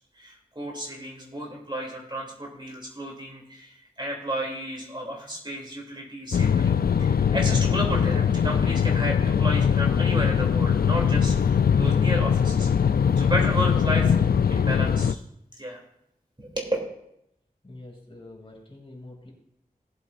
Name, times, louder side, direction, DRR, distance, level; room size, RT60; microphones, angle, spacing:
voice 1, 0.1-12.7 13.2-14.2 14.5-15.2 15.6-15.8 16.4-16.8, equal, 30° right, -1 dB, 2.9 m, -32 dB
sound 1, 6.3-15.1, left 7 dB, 75° left, 0.4 m, -21 dB
voice 2, 17.6-19.3, left 2 dB, 35° left, 0 dB, 2.7 m, -45 dB
18.0 x 7.9 x 2.5 m, 0.77 s
wide cardioid pair, 65°, 16 cm